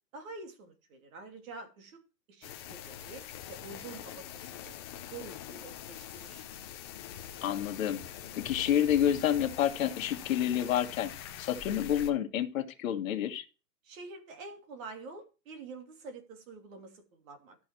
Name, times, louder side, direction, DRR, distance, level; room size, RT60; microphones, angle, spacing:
voice 1, 0.1-2.0 2.3-4.8 5.1-6.4 13.8-17.6, right 3 dB, 50° right, 3.0 m, -47 dB
sound 1, 2.4-12.1, left 9 dB, 15° left, 0.5 m, -44 dB
voice 2, 7.4-8.0 8.4-11.1 11.4-13.4, left 10 dB, 50° left, 1.5 m, -29 dB
12.5 x 6.2 x 4.5 m
hypercardioid pair, 145°, 50 cm